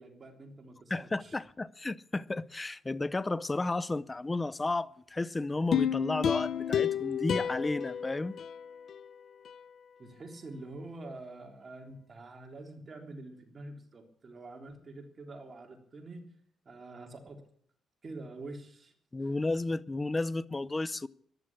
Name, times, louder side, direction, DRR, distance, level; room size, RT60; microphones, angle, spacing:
voice 1, 0.0-1.4 10.0-16.2 16.6-17.4 18.0-18.9 19.2-19.3, right 2 dB, 35° right, 3.4 m, -46 dB
voice 2, 0.9-8.3 19.1-21.1, left 2 dB, 20° left, 0.6 m, -32 dB
sound 1, 5.7-9.0 9.4-9.5, left 9 dB, 60° left, 0.8 m, -31 dB
15.0 x 11.5 x 8.6 m
cardioid pair, 90°, 0 cm